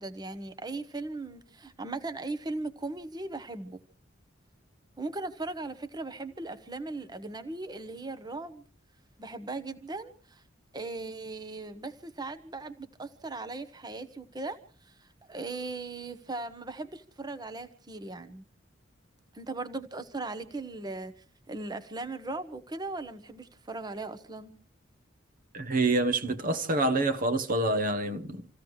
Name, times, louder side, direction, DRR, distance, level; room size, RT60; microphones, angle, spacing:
voice 1, 0.0-3.8 5.0-8.6 9.2-10.4 10.7-14.6 14.8-18.4 19.3-21.1 21.5-24.5, right 2 dB, 20° right, 1.1 m, -38 dB
voice 2, 25.5-28.5, right 2 dB, 45° right, 1.1 m, -27 dB
28.0 x 15.5 x 3.2 m
head